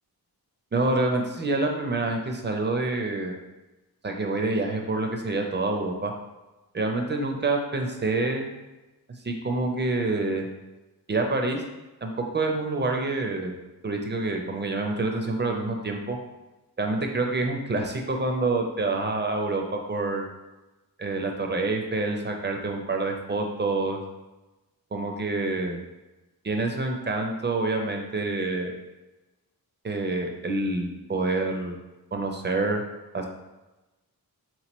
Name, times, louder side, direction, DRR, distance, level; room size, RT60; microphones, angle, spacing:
voice 1, 0.7-3.3 4.0-6.1 6.7-8.5 9.2-10.5 11.1-11.6 12.0-13.5 13.8-16.2 16.8-20.3 21.0-24.0 24.9-25.8 26.4-28.7 29.8-31.8 32.1-32.8 33.1-33.3, right 2 dB, 30° right, 3 dB, 0.5 m, -27 dB
3.8 x 3.0 x 3.0 m, 1.1 s
wide cardioid pair, 110°, 38 cm